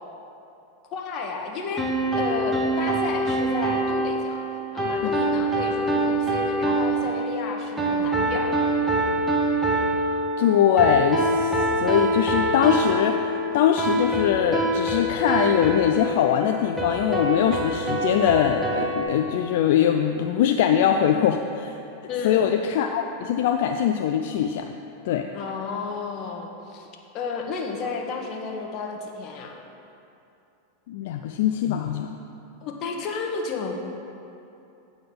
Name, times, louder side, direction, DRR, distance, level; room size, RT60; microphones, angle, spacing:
voice 1, 0.9-1.9 2.2-4.4 4.7-8.6 22.1-22.5 25.3-26.9 27.1-29.6 32.6-33.7, left 4 dB, 40° left, 1 dB, 1.1 m, -32 dB
sound 1, 1.8-19.0, right 1 dB, 10° right, 1.3 m, -25 dB
voice 2, 10.4-21.8 22.2-24.7 25.0-25.3 30.9-32.1, left 9 dB, 65° left, 5 dB, 0.4 m, -22 dB
9.2 x 3.9 x 6.9 m, 2.7 s
hypercardioid pair, 120°, 0 cm